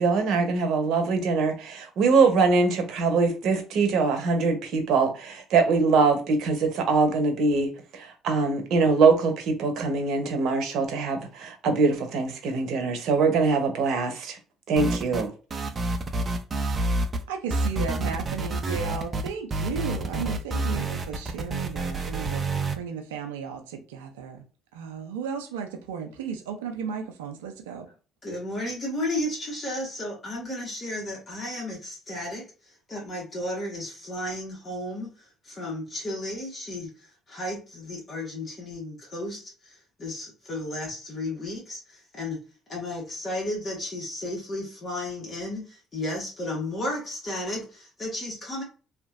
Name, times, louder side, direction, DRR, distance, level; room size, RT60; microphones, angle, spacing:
voice 1, 0.0-14.4 14.7-15.3, right 4 dB, 65° right, 0.8 m, -23 dB
sound 1, 14.8-15.3 15.5-17.2 17.5-22.8, right 2 dB, 35° right, 0.5 m, -28 dB
voice 2, 17.3-24.4 24.7-27.9, right 6 dB, 90° right, 0.4 m, -35 dB
voice 3, 28.2-42.4 42.7-48.6, left 1 dB, 40° left, 1.4 m, -33 dB
2.8 x 2.5 x 2.5 m
hypercardioid pair, 60°, 0 cm